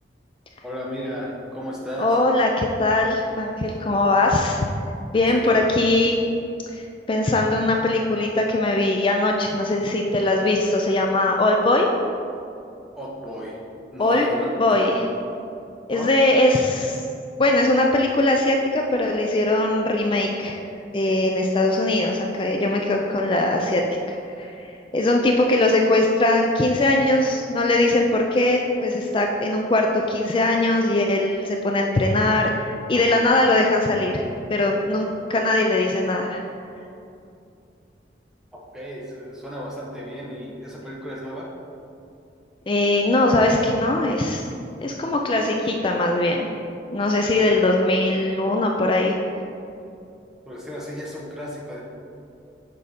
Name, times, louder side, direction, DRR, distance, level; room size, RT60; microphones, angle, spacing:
voice 1, 0.6-2.2 5.3-5.6 13.0-13.6 13.9-15.0 15.9-16.1 38.5-41.5 50.5-51.8, equal, 5° right, -5 dB, 0.9 m, -34 dB
voice 2, 2.0-4.7 5.1-6.2 7.1-11.9 14.0-14.3 14.6-15.0 15.9-17.0 17.4-20.6 20.9-24.7 24.9-34.2 34.5-36.4 42.7-44.5 44.8-46.5 46.9-49.2, left 2 dB, 30° left, 2 dB, 0.3 m, -21 dB
6.4 x 4.1 x 5.0 m, 2.6 s
head